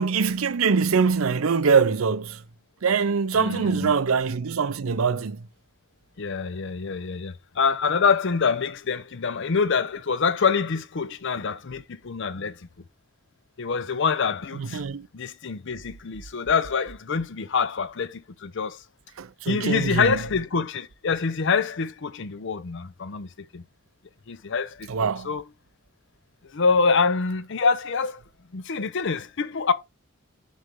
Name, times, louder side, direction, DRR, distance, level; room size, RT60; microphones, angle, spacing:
voice 1, 0.0-2.4 2.8-5.4 14.6-15.1 19.2-20.2 24.9-25.3, right 5 dB, 75° right, 0.6 m, -23 dB
voice 2, 3.3-3.9 6.2-12.6 13.6-14.8 15.1-18.8 19.5-23.6 24.3-24.9 25.2-25.4 26.5-28.2 28.5-29.7, left 5 dB, 60° left, 0.6 m, -25 dB
6.3 x 3.3 x 5.4 m
head